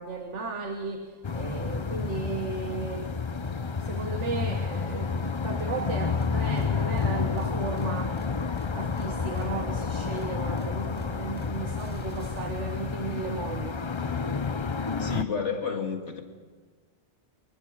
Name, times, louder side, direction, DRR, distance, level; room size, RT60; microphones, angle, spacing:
voice 1, 0.0-8.5 8.7-13.8, right 4 dB, 85° right, 5 dB, 1.7 m, -35 dB
sound 1, 1.2-15.2, left 5 dB, 30° left, 0.6 m, -30 dB
sound 2, 6.2-12.9, right 1 dB, 10° left, 2.0 m, -49 dB
voice 2, 15.0-16.2, left 6 dB, 85° left, 4 dB, 2.5 m, -30 dB
26.0 x 22.0 x 6.5 m, 1.4 s
omnidirectional pair, 1.2 m